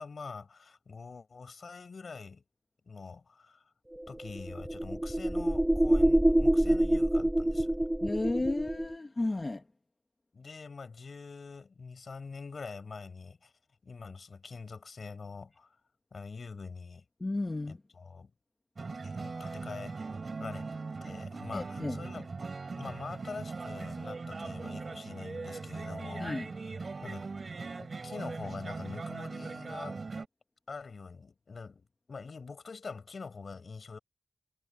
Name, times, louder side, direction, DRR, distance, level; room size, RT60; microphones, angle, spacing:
voice 1, 0.0-2.4 2.9-3.6 4.1-7.8 10.3-13.5 13.8-15.7 16.1-17.0 17.7-18.3 19.0-20.1 20.4-20.7 21.0-22.3 22.7-26.7 27.0-27.3 27.8-30.0 30.7-34.0, left 4 dB, 65° left, 4.7 m, -44 dB
sound 1, 4.0-8.9, right 1 dB, 10° right, 0.5 m, -26 dB
voice 2, 8.0-9.6 17.2-17.8 21.5-22.0 26.2-26.5, left 2 dB, 30° left, 1.4 m, -33 dB
sound 2, 18.8-30.3, right 4 dB, 55° right, 3.0 m, -40 dB
wide cardioid pair, 120°, 0 cm